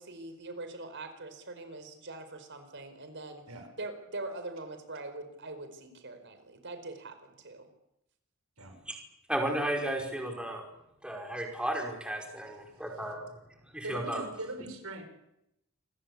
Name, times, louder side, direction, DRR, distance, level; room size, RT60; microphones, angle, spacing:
voice 1, 0.0-3.4 3.8-7.7, right 2 dB, 55° right, 9 dB, 4.7 m, -43 dB
voice 2, 9.3-10.6 11.0-13.2 13.7-14.2, right 1 dB, 5° right, 1 dB, 5.3 m, -33 dB
voice 3, 13.8-15.0, right 2 dB, 90° right, 6 dB, 6.2 m, -40 dB
28.0 x 22.0 x 8.5 m, 0.85 s
head